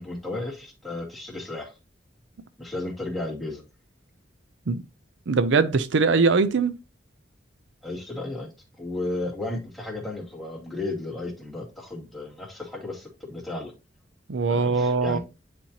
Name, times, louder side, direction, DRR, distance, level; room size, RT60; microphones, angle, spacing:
voice 1, 0.0-1.8 2.6-3.6 7.8-8.5 8.8-13.7 14.5-15.2, left 2 dB, ahead, 2.3 m, -34 dB
voice 2, 5.3-6.7 14.3-15.2, right 4 dB, 70° right, 0.5 m, -21 dB
9.9 x 4.4 x 2.8 m
head